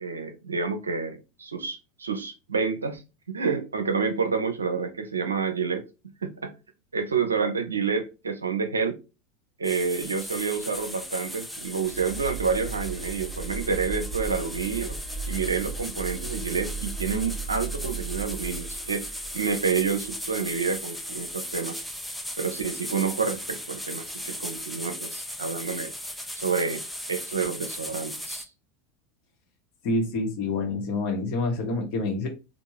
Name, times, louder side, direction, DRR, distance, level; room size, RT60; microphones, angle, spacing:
voice 1, 0.0-3.0 3.3-5.8 6.2-6.5 6.9-9.0 9.6-15.0 15.3-19.1 19.3-21.8 22.4-25.9 26.4-26.8 27.1-28.5, right 5 dB, 80° right, 0.5 m, -28 dB
sound 1, 9.6-28.4, left 1 dB, 5° left, 0.5 m, -37 dB
sound 2, 11.8-20.7, right 4 dB, 30° left, 1.1 m, -37 dB
voice 2, 29.8-32.3, left 2 dB, 50° left, 1.2 m, -27 dB
3.5 x 2.4 x 3.1 m
figure-of-eight pair, 80°, 0 cm